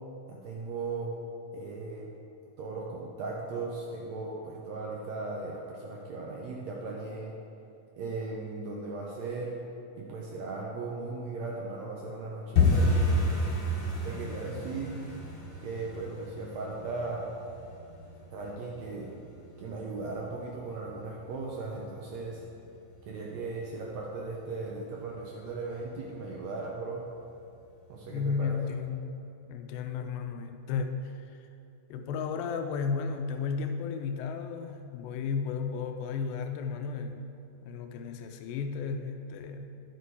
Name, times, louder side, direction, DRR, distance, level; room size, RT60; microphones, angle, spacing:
voice 1, 0.3-1.1 1.5-2.1 2.6-7.3 8.0-9.5 10.0-13.5 14.0-15.0 15.6-17.3 18.3-19.1 19.6-22.4 23.1-27.0 27.9-28.6, right 3 dB, 75° right, -2 dB, 1.7 m, -37 dB
sound 1, 12.5-23.3 23.5-24.2 24.5-24.8 25.0-25.4 25.7-25.8 26.3-26.9 27.2-27.3 27.8-27.9, left 2 dB, 45° left, 1.6 m, -31 dB
voice 2, 28.1-29.2 29.5-31.3 31.9-37.3 37.6-39.7, left 5 dB, 85° left, 6 dB, 2.4 m, -33 dB
10.5 x 6.9 x 4.7 m, 2.6 s
omnidirectional pair, 4.0 m